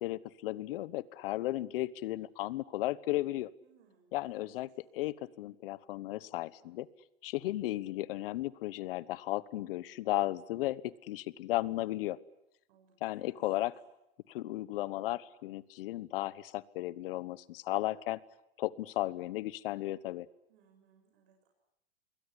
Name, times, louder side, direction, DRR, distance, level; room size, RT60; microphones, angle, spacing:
voice 1, 0.0-3.5 4.1-6.9 7.2-12.2 13.0-13.7 14.3-18.2 18.6-20.3, left 16 dB, 60° left, 19 dB, 1.2 m, -35 dB
voice 2, 3.6-4.6 12.7-13.7 20.5-21.5, right 6 dB, 65° right, 2 dB, 7.4 m, -67 dB
26.0 x 22.0 x 9.9 m, 0.85 s
supercardioid pair, 150°, 31 cm